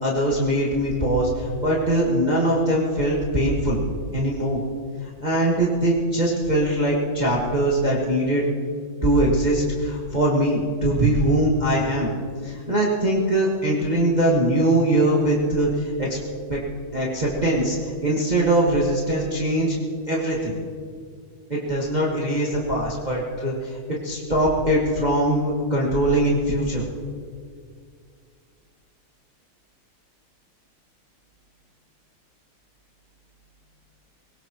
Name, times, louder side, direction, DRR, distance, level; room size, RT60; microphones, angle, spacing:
voice 1, 0.0-3.8 4.1-4.6 5.0-8.5 9.0-12.1 12.4-16.2 16.5-16.6 16.9-17.8 18.0-19.8 20.1-20.6 21.5-23.7 24.0-26.8, right 1 dB, 20° right, -4 dB, 1.6 m, -22 dB
20.5 x 18.5 x 3.1 m, 2.1 s
omnidirectional pair, 2.3 m